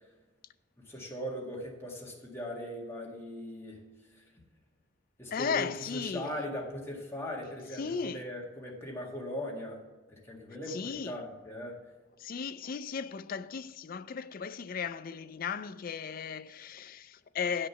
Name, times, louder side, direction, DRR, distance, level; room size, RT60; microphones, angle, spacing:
voice 1, 0.8-3.8 4.1-4.2 5.2-9.8 10.1-11.8, left 1 dB, 10° left, 1.8 m, -39 dB
voice 2, 5.3-6.3 7.8-8.2 10.7-11.1 12.2-17.7, left 6 dB, 45° left, 0.4 m, -36 dB
10.0 x 6.6 x 5.7 m
head